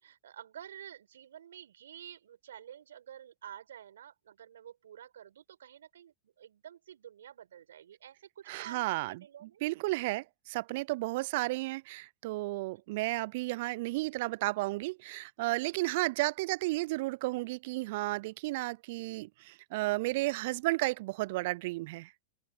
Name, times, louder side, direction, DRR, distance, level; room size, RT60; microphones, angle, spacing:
voice 1, 0.0-9.6 12.5-12.8, right 10 dB, 70° right, 5.4 m, -50 dB
voice 2, 8.5-22.1, right 21 dB, 55° right, 0.4 m, -33 dB
open air
figure-of-eight pair, 95°, 0 cm